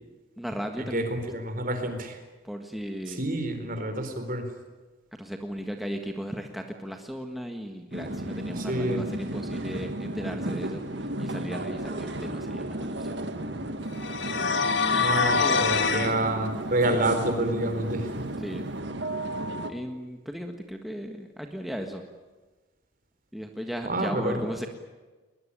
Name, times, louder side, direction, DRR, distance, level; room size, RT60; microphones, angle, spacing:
voice 1, 0.4-1.1 2.4-3.2 5.1-13.2 14.8-15.6 18.4-18.7 19.7-22.0 23.3-24.7, equal, ahead, 3 dB, 1.6 m, -36 dB
voice 2, 0.9-2.2 3.2-4.5 8.6-9.0 15.0-18.3 23.9-24.4, right 1 dB, 45° right, 7 dB, 4.2 m, -28 dB
sound 1, 7.9-19.7, right 1 dB, 60° right, 2.0 m, -34 dB
sound 2, 14.0-16.1, left 5 dB, 65° left, 2.0 m, -24 dB
22.0 x 21.0 x 10.0 m, 1.3 s
head